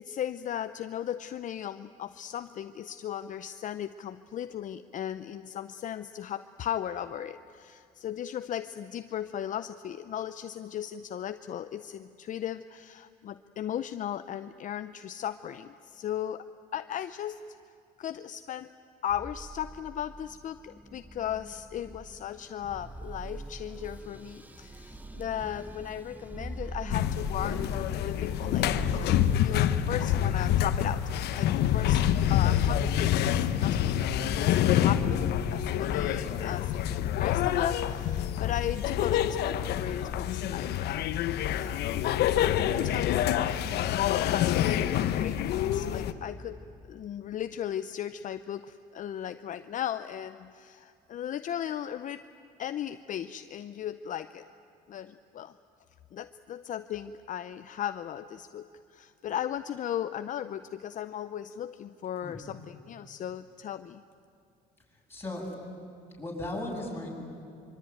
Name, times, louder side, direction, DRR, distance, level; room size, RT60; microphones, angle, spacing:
voice 1, 0.0-16.5 16.7-17.4 18.0-18.7 19.0-32.0 32.3-41.0 41.5-46.6 46.9-52.2 52.6-54.5 54.9-55.5 56.1-64.0, left 10 dB, 50° left, 11 dB, 0.7 m, -37 dB
sound 1, 19.1-29.4, right 2 dB, 10° right, 1.4 m, -42 dB
sound 2, 26.9-46.1, left 11 dB, 75° left, 1.1 m, -27 dB
voice 2, 65.1-65.5 66.2-67.1, left 1 dB, 15° left, -3 dB, 7.5 m, -36 dB
25.0 x 24.0 x 9.3 m, 2.5 s
cardioid pair, 110°, 17 cm